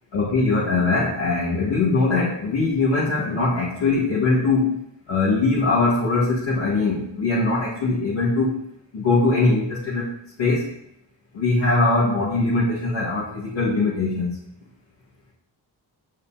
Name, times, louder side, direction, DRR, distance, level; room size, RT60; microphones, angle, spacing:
voice 1, 0.1-4.8 5.1-8.6 8.9-10.1 10.4-10.7 11.3-14.4, left 3 dB, 85° left, -9 dB, 1.8 m, -21 dB
9.3 x 5.5 x 2.8 m, 0.76 s
cardioid pair, 60°, 44 cm